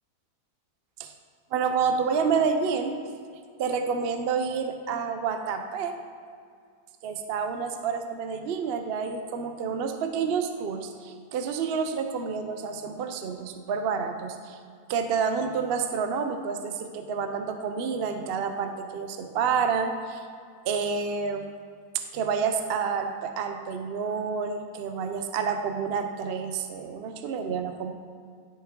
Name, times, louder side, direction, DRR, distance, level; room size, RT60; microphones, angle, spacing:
voice 1, 1.5-3.0 3.6-5.9 7.0-14.6 14.9-20.2 20.6-21.5 21.9-27.9, right 6 dB, 60° right, 7 dB, 0.6 m, -29 dB
11.0 x 6.4 x 3.7 m, 2.1 s
omnidirectional pair, 1.7 m